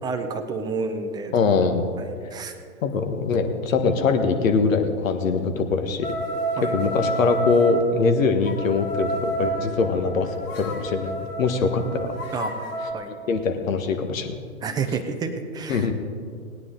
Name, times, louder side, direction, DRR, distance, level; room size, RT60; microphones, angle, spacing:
voice 1, 0.0-1.3 2.0-2.5 4.0-4.1 6.6-6.7 11.8-12.5 12.9-13.1 14.6-16.0, right 4 dB, 10° right, 7 dB, 0.5 m, -30 dB
voice 2, 1.3-1.9 2.8-6.1 6.7-12.1 13.3-14.3 15.7-16.0, left 4 dB, 65° left, 6 dB, 1.6 m, -22 dB
sound 1, 6.0-7.8 8.5-12.9, right 1 dB, 25° left, 2.0 m, -30 dB
18.5 x 9.7 x 3.8 m, 2.2 s
hypercardioid pair, 115°, 42 cm